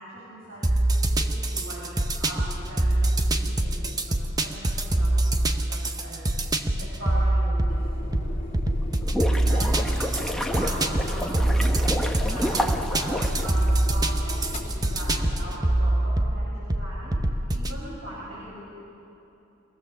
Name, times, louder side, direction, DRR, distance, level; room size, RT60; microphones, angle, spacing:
voice 1, 0.0-6.2 6.8-8.4 9.4-17.2 17.5-18.6, right 1 dB, 80° right, -8 dB, 6.9 m, -40 dB
sound 1, 0.6-17.8, right 1 dB, 20° right, 0.9 m, -25 dB
sound 2, 7.7-15.7, left 1 dB, 35° left, 2.8 m, -34 dB
sound 3, 8.8-14.2, equal, 5° left, 1.2 m, -30 dB
25.0 x 19.0 x 7.2 m, 2.9 s
head